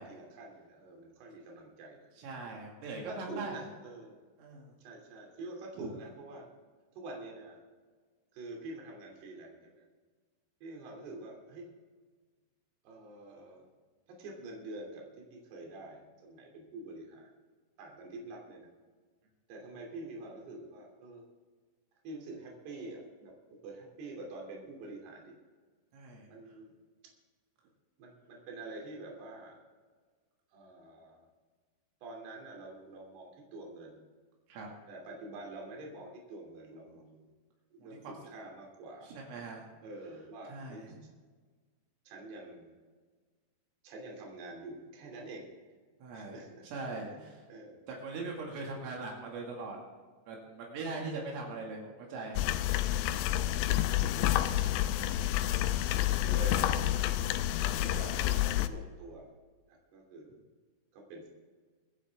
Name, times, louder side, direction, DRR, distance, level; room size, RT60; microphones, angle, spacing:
voice 1, 0.0-2.1 3.0-4.1 4.8-6.5 6.9-7.6 8.3-9.8 10.6-11.7 12.8-13.7 14.1-17.3 17.8-18.7 19.5-21.2 22.0-25.3 26.3-26.7 28.0-29.6 30.5-31.2 32.0-34.0 34.9-37.3 37.7-39.1 39.8-40.8 42.1-42.7 43.8-45.5 46.1-46.7 47.1-47.8 48.7-48.9 54.0-54.9 55.6-57.0 57.6-59.3 59.7-60.4 60.9-61.3, right 2 dB, 55° right, 0 dB, 4.7 m, -46 dB
voice 2, 2.2-3.6 4.4-4.7 5.8-5.9 25.9-26.3 34.5-34.7 37.8-38.1 39.0-39.6 40.5-40.9 46.0-47.4 47.9-49.8 50.3-52.5, right 3 dB, 80° right, -1 dB, 4.8 m, -41 dB
sound 1, 52.4-58.7, left 13 dB, 90° left, 2.6 m, -29 dB
24.5 x 10.5 x 3.6 m, 1.5 s
omnidirectional pair, 5.8 m